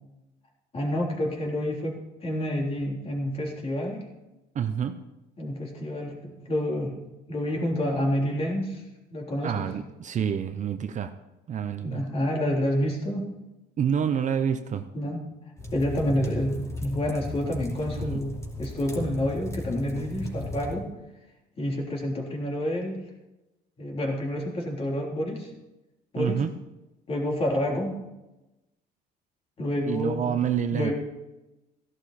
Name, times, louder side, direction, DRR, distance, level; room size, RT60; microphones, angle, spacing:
voice 1, 0.7-4.0 5.4-7.0 7.3-8.8 9.1-9.7 11.8-13.3 14.9-15.2 15.7-20.9 21.6-23.0 23.8-25.5 26.1-26.4 27.1-27.9 29.6-30.3 30.7-30.9, left 1 dB, 35° left, -1 dB, 3.6 m, -28 dB
voice 2, 4.5-5.0 9.4-11.1 11.5-12.0 13.8-14.9 18.0-18.2 26.2-26.5 29.9-30.9, right 8 dB, 45° right, 9 dB, 0.8 m, -28 dB
sound 1, 15.6-20.7, left 1 dB, 15° left, 2.8 m, -35 dB
15.0 x 11.5 x 4.3 m, 1.0 s
cardioid pair, 110°, 17 cm